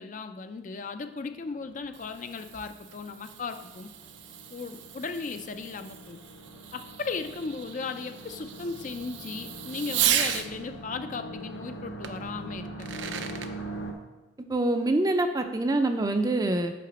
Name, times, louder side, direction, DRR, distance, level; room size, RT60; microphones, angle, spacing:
voice 1, 0.0-3.9 4.5-6.2 6.7-12.9, left 4 dB, 40° left, 8 dB, 0.4 m, -36 dB
sound 1, 0.8-13.9, right 1 dB, 65° left, 1.0 m, -43 dB
Fireworks, 1.6-10.5 12.0-12.1 12.6-13.5, right 10 dB, 70° right, 0.5 m, -34 dB
voice 2, 14.5-16.7, right 2 dB, 20° right, 6 dB, 0.4 m, -25 dB
5.9 x 5.0 x 6.1 m, 1.1 s
head